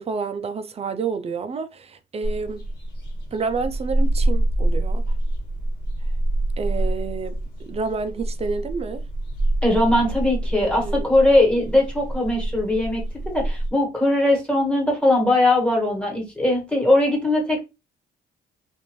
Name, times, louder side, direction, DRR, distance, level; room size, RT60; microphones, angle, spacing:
voice 1, 0.0-2.6 3.3-5.1 6.6-9.0 10.6-11.1, right 5 dB, 30° right, 0.5 m, -29 dB
sound 1, 2.2-13.7, right 1 dB, 50° left, 1.5 m, -26 dB
voice 2, 9.6-17.6, left 1 dB, 5° left, 1.5 m, -20 dB
2.6 x 2.5 x 3.0 m
cardioid pair, 90°, 20 cm